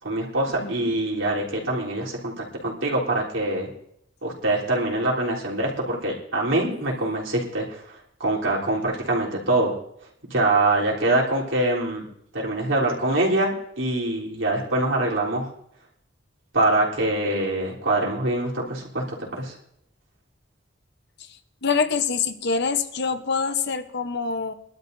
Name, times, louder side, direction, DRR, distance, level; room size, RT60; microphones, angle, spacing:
voice 1, 0.0-3.7 4.2-9.7 10.2-12.1 12.3-15.5 16.5-19.5, right 2 dB, 80° right, -4 dB, 3.6 m, -24 dB
voice 2, 0.6-0.9 21.6-24.5, left 5 dB, 60° left, 9 dB, 0.9 m, -25 dB
22.0 x 12.0 x 2.7 m, 0.71 s
head